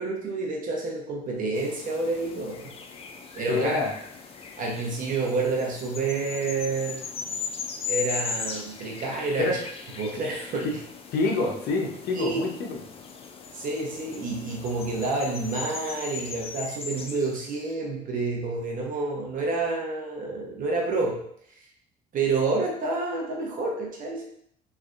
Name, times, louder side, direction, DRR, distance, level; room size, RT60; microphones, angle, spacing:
voice 1, 0.0-2.7 3.4-3.8 4.6-7.0 7.9-9.5 10.0-10.8 12.1-12.4 13.5-21.2 22.1-24.2, right 3 dB, 55° right, -1 dB, 0.9 m, -29 dB
sound 1, 1.5-17.7, left 5 dB, 35° left, 0.4 m, -38 dB
voice 2, 3.5-3.9 9.4-9.6 11.1-12.8, left 3 dB, 70° left, 1 dB, 0.7 m, -26 dB
3.3 x 2.5 x 2.5 m, 0.70 s
cardioid pair, 110°, 17 cm